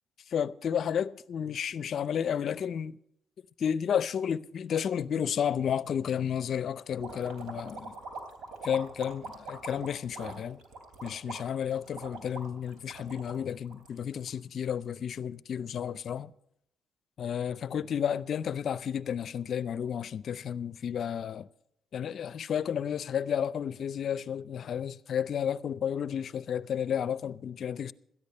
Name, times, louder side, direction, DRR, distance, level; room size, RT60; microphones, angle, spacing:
voice 1, 0.3-3.0 3.6-7.9 8.6-10.6 11.0-16.3 17.2-21.5 21.9-27.9, left 8 dB, 60° left, 0.5 m, -32 dB
sound 1, 7.0-14.3, right 3 dB, 75° right, 3.1 m, -43 dB
13.5 x 10.5 x 5.4 m
cardioid pair, 90°, 0 cm